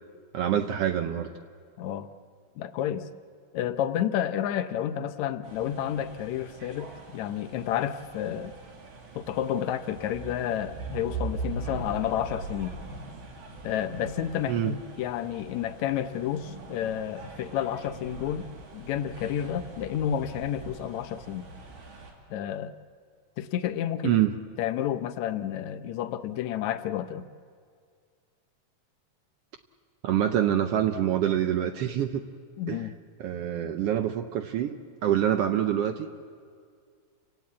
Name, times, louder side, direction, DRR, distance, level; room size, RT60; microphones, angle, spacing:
voice 1, 0.3-1.3 14.5-14.7 24.0-24.3 30.0-32.2 32.7-32.9 33.2-34.7 35.0-36.1, right 10 dB, 70° right, 9 dB, 1.5 m, -26 dB
voice 2, 1.8-2.1 2.6-3.1 3.5-8.5 9.2-12.7 13.6-18.5 18.7-21.5 22.3-22.7 23.4-24.1 24.6-27.3 32.6-32.9, left 10 dB, 75° left, 11 dB, 2.0 m, -30 dB
sound 1, 5.4-22.1, right 3 dB, 90° right, 4.1 m, -41 dB
29.5 x 17.0 x 8.5 m, 2.1 s
omnidirectional pair, 3.4 m